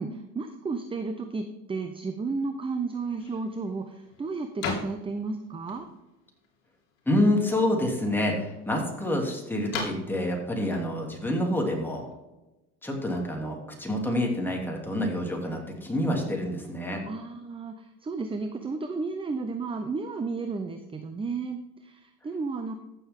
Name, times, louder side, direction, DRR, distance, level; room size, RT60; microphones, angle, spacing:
voice 1, 0.0-5.9 17.1-22.7, right 4 dB, 15° right, 7 dB, 0.7 m, -33 dB
sound 1, 3.0-12.1, left 4 dB, 65° left, 2.9 m, -41 dB
voice 2, 7.1-12.1 12.8-17.0, left 1 dB, 5° left, 0 dB, 2.9 m, -27 dB
14.5 x 7.0 x 3.7 m, 1.0 s
supercardioid pair, 120°, 35 cm